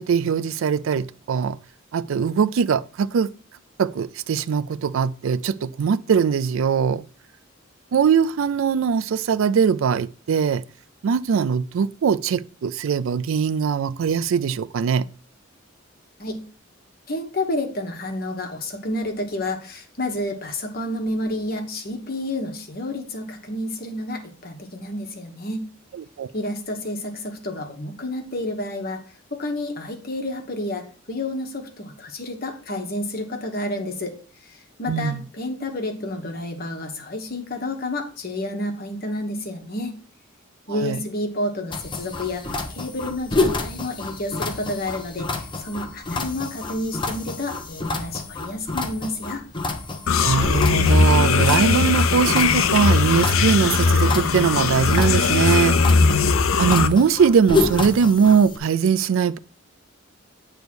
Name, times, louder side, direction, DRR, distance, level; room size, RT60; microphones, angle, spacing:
voice 1, 0.0-1.6 1.9-3.3 3.8-7.0 7.9-10.6 11.0-15.1 26.2-26.3 34.9-35.2 40.7-41.0 50.2-55.8 56.6-59.4, right 6 dB, 70° right, 0.3 m, -21 dB
voice 2, 17.1-25.7 26.3-29.0 29.3-34.1 34.5-40.0 40.7-49.4, left 1 dB, 45° left, 1.3 m, -30 dB
sound 1, 41.7-58.6, left 3 dB, 25° left, 0.8 m, -29 dB
sound 2, 50.1-56.9, left 4 dB, 80° left, 0.6 m, -19 dB
8.1 x 3.5 x 6.1 m
head